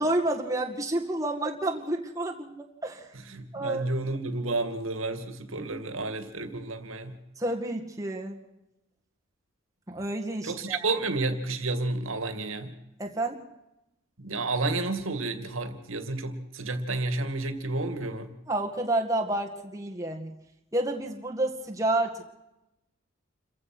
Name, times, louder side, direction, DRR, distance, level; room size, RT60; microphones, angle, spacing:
voice 1, 0.0-3.1 3.5-3.9 7.4-8.4 9.9-10.8 13.0-13.4 18.5-20.3 20.7-22.3, right 1 dB, 15° right, 0 dB, 2.0 m, -29 dB
voice 2, 3.3-7.1 10.4-12.7 14.2-18.3, right 2 dB, 80° right, 9 dB, 2.4 m, -31 dB
28.5 x 15.5 x 6.2 m, 0.92 s
head